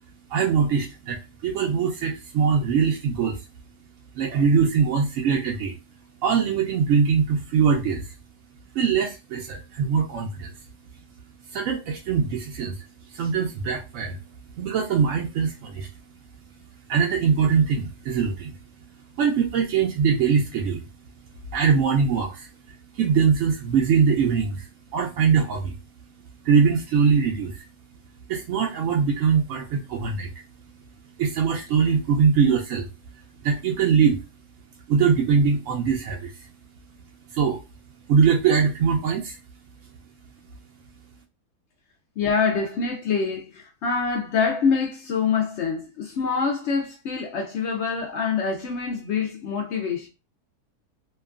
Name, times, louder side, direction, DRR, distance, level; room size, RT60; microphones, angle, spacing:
voice 1, 0.3-3.4 4.2-5.7 6.2-8.1 8.7-10.5 11.5-12.8 13.1-14.2 14.6-15.9 16.9-18.5 19.2-20.8 21.5-22.5 22.9-25.8 26.4-27.6 28.3-30.3 31.2-32.9 33.4-34.2 34.9-36.5 37.3-37.6 38.1-39.4, right 6 dB, 70° right, 0.7 m, -22 dB
voice 2, 42.2-50.1, left 5 dB, 85° left, 0.6 m, -25 dB
2.9 x 2.3 x 2.3 m
omnidirectional pair, 1.7 m